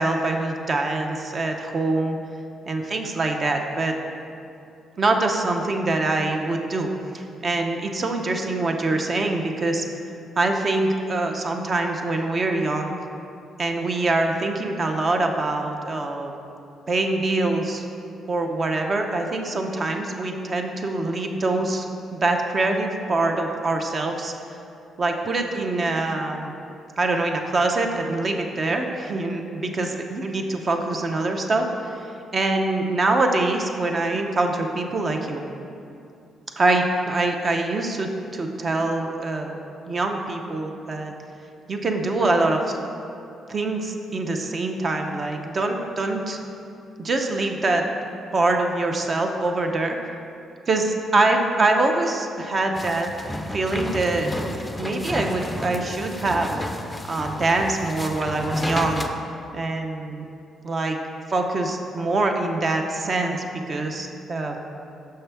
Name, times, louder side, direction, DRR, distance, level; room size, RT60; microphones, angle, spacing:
voice 1, 0.0-2.2 2.7-3.9 5.0-6.9 7.1-9.8 10.4-12.9 13.6-16.3 16.9-17.8 18.3-21.8 22.1-24.3 25.0-26.5 27.0-32.0 32.3-35.4 36.6-39.6 39.9-41.1 41.7-42.8 43.5-46.4 47.0-47.8 48.3-50.0 50.7-53.1 53.5-56.5 57.1-59.1 59.5-60.2 60.6-61.0 61.3-64.6, right 2 dB, 40° right, 3 dB, 0.6 m, -24 dB
sound 1, 52.7-59.1, left 1 dB, 15° left, 0.4 m, -32 dB
6.5 x 5.7 x 3.4 m, 2.6 s
cardioid pair, 90°, 0 cm